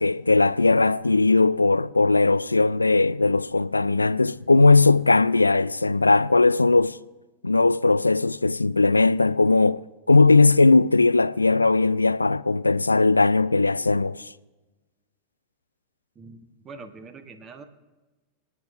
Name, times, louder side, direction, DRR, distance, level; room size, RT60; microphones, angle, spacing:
voice 1, 0.0-7.0 7.4-14.3, left 3 dB, 80° left, 0.3 m, -19 dB
voice 2, 16.1-17.7, right 4 dB, 25° right, 1.2 m, -43 dB
27.0 x 9.2 x 3.2 m
figure-of-eight pair, 90°, 0 cm